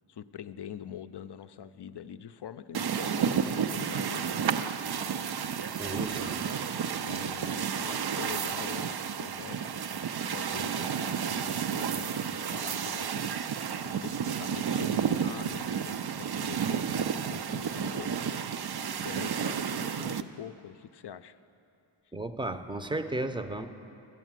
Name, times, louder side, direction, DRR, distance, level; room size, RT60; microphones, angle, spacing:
voice 1, 0.1-4.7 5.9-9.9 10.3-18.2 19.0-21.4, left 9 dB, 55° left, 12 dB, 0.5 m, -44 dB
sound 1, 2.7-20.2, right 7 dB, 50° right, 0.5 m, -31 dB
voice 2, 5.7-6.4 22.1-23.7, right 2 dB, 10° right, 9 dB, 0.6 m, -34 dB
13.5 x 8.0 x 7.5 m, 2.7 s
wide cardioid pair, 45°, 49 cm